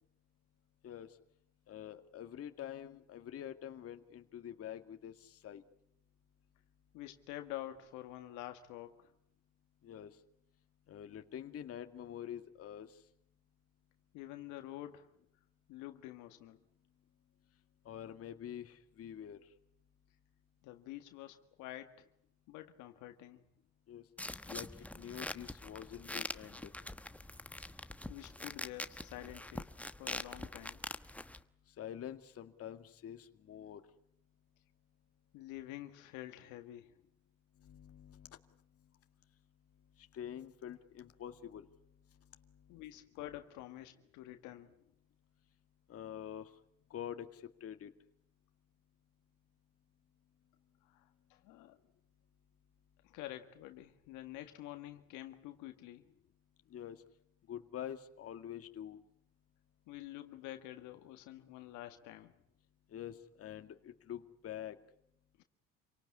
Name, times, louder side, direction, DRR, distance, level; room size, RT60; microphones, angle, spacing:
voice 1, 1.7-5.6 9.8-10.1 10.9-12.9 17.9-19.4 23.9-24.0 24.5-24.7 24.9-26.7 31.8-33.8 37.6-38.4 40.1-41.7 45.9-46.5 46.9-47.9 56.7-57.0 57.5-59.0 62.9-64.8, left 10 dB, 50° left, 7 dB, 2.1 m, -46 dB
voice 2, 6.9-9.1 14.1-15.1 15.7-16.6 20.6-22.1 22.5-23.4 28.1-29.7 30.0-30.8 35.3-37.0 42.7-44.7 50.9-51.8 53.0-56.0 59.9-62.3 65.4-65.5, left 14 dB, 80° left, 7 dB, 1.8 m, -48 dB
sound 1, 24.2-31.4, left 1 dB, 5° left, 1.1 m, -44 dB
28.0 x 18.0 x 9.7 m, 0.75 s
supercardioid pair, 95°, 30 cm